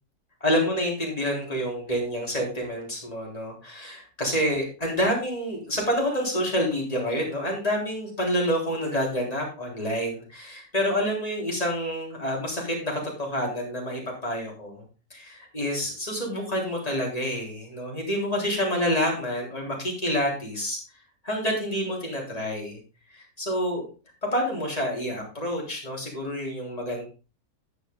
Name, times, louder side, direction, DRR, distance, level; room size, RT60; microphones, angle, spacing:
voice 1, 0.4-14.8 15.1-20.8 21.2-22.8 23.1-23.9 24.3-27.0, equal, 25° left, -1 dB, 3.7 m, -28 dB
10.0 x 8.1 x 3.8 m, 0.32 s
omnidirectional pair, 1.4 m